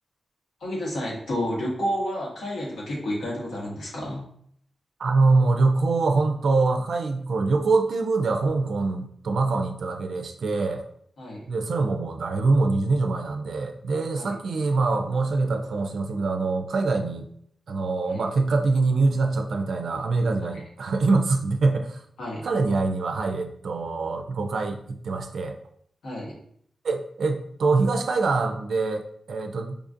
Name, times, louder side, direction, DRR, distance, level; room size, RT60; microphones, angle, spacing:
voice 1, 0.6-4.2 11.2-11.4 14.1-14.3 18.1-18.2 22.2-22.4 26.0-26.3, equal, 90° left, -4 dB, 1.2 m, -30 dB
voice 2, 5.0-10.8 11.5-17.3 17.7-22.0 22.4-24.8 25.0-25.6 26.8-29.8, right 3 dB, 75° right, 4 dB, 0.3 m, -24 dB
4.8 x 2.4 x 2.5 m, 0.67 s
wide cardioid pair, 115°, 0 cm